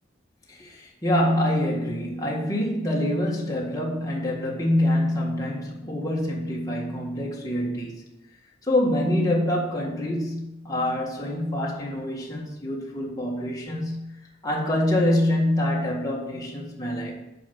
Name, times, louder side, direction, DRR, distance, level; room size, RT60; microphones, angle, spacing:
voice 1, 0.5-8.0 8.6-14.1 14.4-17.2, left 1 dB, 20° left, 1.7 m, -25 dB
8.6 x 5.2 x 6.1 m
head